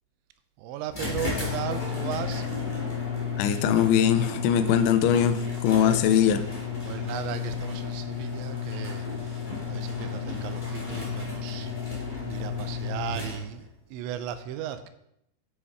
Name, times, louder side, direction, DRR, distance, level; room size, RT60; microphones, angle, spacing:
voice 1, 0.6-2.8 5.8-6.0 6.8-12.0 12.3-14.9, right 10 dB, 85° right, 10 dB, 3.0 m, -36 dB
sound 1, 0.9-13.7, left 6 dB, 30° left, 0.9 m, -32 dB
voice 2, 3.4-6.4, left 9 dB, 85° left, 11 dB, 2.9 m, -21 dB
9.7 x 6.3 x 4.7 m, 0.77 s
omnidirectional pair, 5.2 m